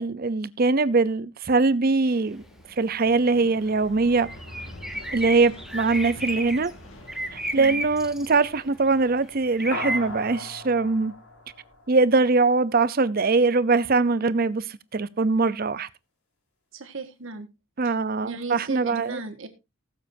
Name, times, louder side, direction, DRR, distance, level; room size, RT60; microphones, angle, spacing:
voice 1, 0.0-2.4 2.8-4.3 5.1-6.7 7.3-11.1 11.9-14.6 14.9-15.9 17.8-19.2, right 3 dB, 40° right, 0.6 m, -22 dB
Aircraft, 2.3-10.3, left 1 dB, 55° left, 2.3 m, -46 dB
sound 1, 4.2-6.7 7.1-8.4 9.6-10.0, right 1 dB, ahead, 0.7 m, -32 dB
sound 2, 9.7-12.4, left 2 dB, 85° left, 5.1 m, -38 dB
voice 2, 16.7-17.5 17.8-17.9 18.2-19.5, right 3 dB, 60° right, 1.7 m, -35 dB
19.5 x 7.4 x 2.7 m
head